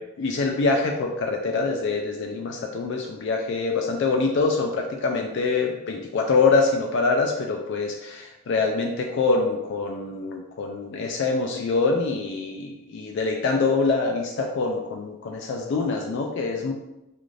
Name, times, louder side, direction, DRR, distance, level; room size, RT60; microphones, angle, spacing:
voice 1, 0.2-16.7, left 4 dB, 60° left, 2 dB, 0.3 m, -25 dB
2.5 x 2.4 x 3.1 m, 0.93 s
head